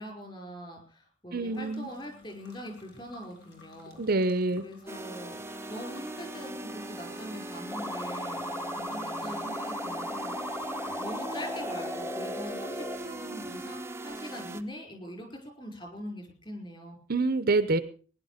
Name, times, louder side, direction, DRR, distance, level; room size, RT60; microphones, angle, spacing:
voice 1, 0.0-4.1 4.6-8.5 8.8-17.0, equal, 25° left, 3 dB, 5.4 m, -43 dB
voice 2, 1.3-1.9 4.0-4.6 17.1-17.8, right 3 dB, 50° right, 14 dB, 0.8 m, -26 dB
sound 1, 1.5-14.6, left 3 dB, 60° left, 4.3 m, -55 dB
sound 2, 4.9-14.6, right 2 dB, 15° right, 0.8 m, -40 dB
sound 3, 7.7-13.0, left 1 dB, 10° left, 1.2 m, -36 dB
20.0 x 10.5 x 5.1 m, 0.40 s
head